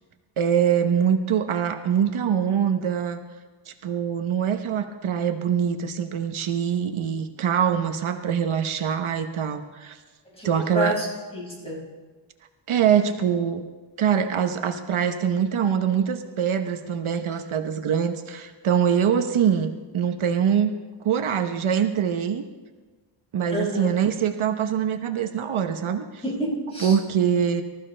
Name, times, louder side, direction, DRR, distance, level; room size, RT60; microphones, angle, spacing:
voice 1, 0.4-3.2 3.7-10.0 10.4-11.0 12.7-13.7 14.0-20.7 21.0-22.4 23.3-26.2 26.8-27.6, right 8 dB, 75° right, 7 dB, 1.0 m, -24 dB
voice 2, 10.3-11.1 11.3-11.8 19.1-19.2 23.5-23.9 26.2-27.0, equal, 10° left, -4 dB, 5.5 m, -29 dB
24.5 x 14.5 x 3.3 m, 1.3 s
wide cardioid pair, 115°, 49 cm